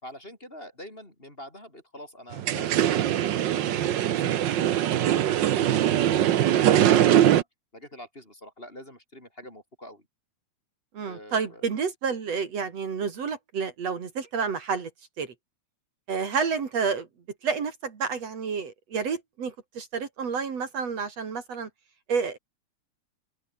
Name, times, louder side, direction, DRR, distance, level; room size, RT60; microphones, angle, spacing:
voice 1, 0.0-7.5 7.7-10.0 11.0-11.6, left 1 dB, 20° left, 4.7 m, -46 dB
sound 1, 2.3-7.4, right 11 dB, 85° right, 1.0 m, -22 dB
voice 2, 10.9-14.9 15.2-15.3 16.1-17.1 17.4-21.7 22.1-22.4, right 5 dB, 60° right, 3.8 m, -30 dB
open air
omnidirectional pair, 3.3 m